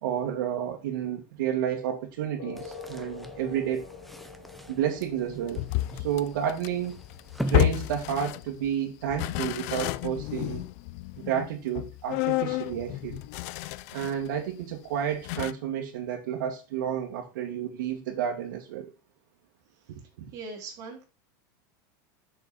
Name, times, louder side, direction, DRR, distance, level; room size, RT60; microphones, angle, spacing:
voice 1, 0.0-3.9 4.7-5.6 5.9-7.0 7.5-10.6 11.2-13.2 13.9-18.9 19.9-20.3, right 9 dB, 80° right, 2.0 m, -31 dB
sound 1, 2.4-9.4, left 5 dB, 70° left, 3.4 m, -47 dB
sound 2, 2.6-8.7, right 1 dB, ahead, 0.7 m, -41 dB
sound 3, 5.5-8.7 9.1-14.3 14.6-14.7 15.2-15.5, left 18 dB, 50° left, 0.5 m, -30 dB
voice 2, 20.3-21.0, right 3 dB, 35° right, 3.4 m, -40 dB
7.5 x 6.7 x 4.2 m
supercardioid pair, 170°, 10 cm